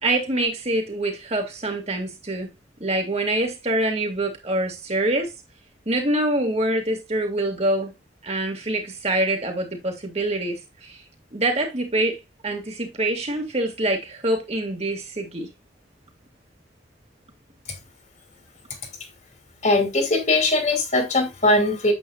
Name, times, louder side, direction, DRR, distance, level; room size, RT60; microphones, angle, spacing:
voice 1, 0.0-2.5 2.8-5.3 5.9-7.9 8.2-11.0 11.3-15.5, right 1 dB, 35° right, 2.4 m, -25 dB
voice 2, 19.6-21.9, left 2 dB, 40° left, 2.6 m, -20 dB
9.4 x 8.0 x 2.5 m
head